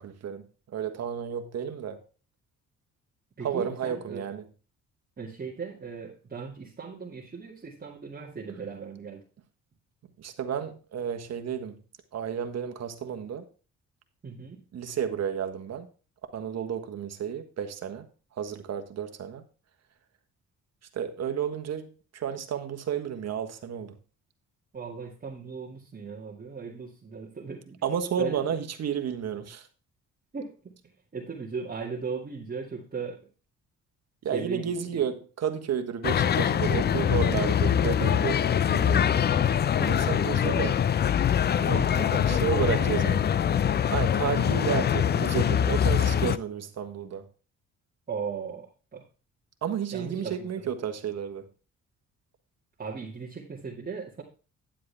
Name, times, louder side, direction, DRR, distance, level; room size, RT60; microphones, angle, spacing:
voice 1, 0.0-2.0 3.4-4.4 10.2-11.7 12.1-13.5 14.7-15.9 16.3-18.1 18.4-19.4 20.9-23.9 27.8-29.7 34.2-39.1 39.8-40.8 41.5-41.8 42.3-43.2 43.9-47.3 49.6-51.5, right 8 dB, 60° right, 1.5 m, -32 dB
voice 2, 3.4-4.3 5.2-9.2 14.2-14.6 24.7-27.8 28.2-28.4 30.3-30.7 31.1-33.2 34.3-35.0 41.7-43.1 48.1-49.0 49.9-50.4 50.6-50.7 52.8-54.2, right 5 dB, 30° right, 2.2 m, -37 dB
sound 1, 36.0-46.4, left 9 dB, 35° left, 0.4 m, -24 dB
10.5 x 7.7 x 3.4 m
cardioid pair, 90°, 30 cm